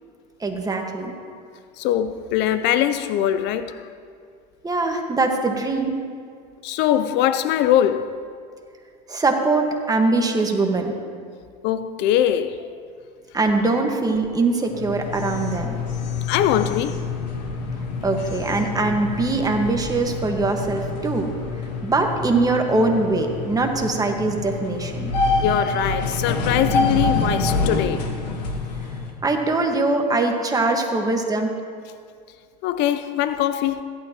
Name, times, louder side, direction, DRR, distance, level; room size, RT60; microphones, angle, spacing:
voice 1, 0.4-1.1 4.6-6.0 9.1-10.9 13.3-15.7 18.0-21.3 21.8-25.1 29.2-31.5, right 3 dB, 15° right, 1.6 m, -22 dB
voice 2, 1.8-3.9 6.6-8.2 11.6-12.7 16.3-17.1 25.4-28.1 32.6-33.8, left 11 dB, 55° left, 0.5 m, -22 dB
sound 1, 14.7-29.1, left 3 dB, 85° left, 1.6 m, -27 dB
16.0 x 11.5 x 3.0 m
hypercardioid pair, 95°, 21 cm